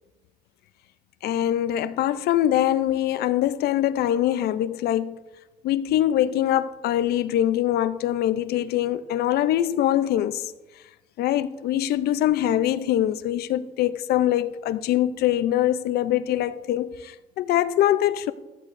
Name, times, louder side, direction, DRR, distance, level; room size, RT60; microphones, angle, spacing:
voice 1, 1.2-5.2 5.6-10.5 11.2-18.3, left 12 dB, 70° left, 0.5 m, -23 dB
13.0 x 13.0 x 2.6 m
cardioid pair, 110°, 17 cm